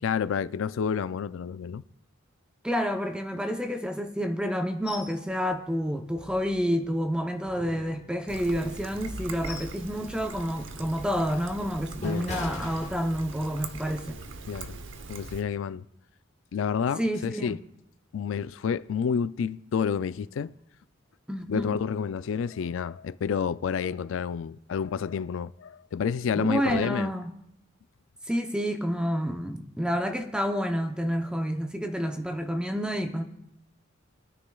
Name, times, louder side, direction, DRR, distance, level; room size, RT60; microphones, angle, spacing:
voice 1, 0.0-1.8 12.0-12.3 14.5-14.8 15.1-15.8 16.5-17.6 18.1-20.5 21.5-27.1, left 7 dB, 75° left, 0.3 m, -29 dB
voice 2, 2.6-14.2 17.0-17.6 21.3-21.8 26.3-27.3 28.3-33.2, equal, 5° right, 0.6 m, -29 dB
sound 1, 4.9-5.2 5.5-5.6 6.1-6.9 7.4-8.5 9.0-9.8 10.2-10.5 11.0-13.5 13.9-14.1, left 2 dB, 35° left, 1.5 m, -41 dB
Trickle dribble, 8.3-15.4, right 3 dB, 70° right, 0.8 m, -41 dB
22.0 x 9.8 x 2.3 m
head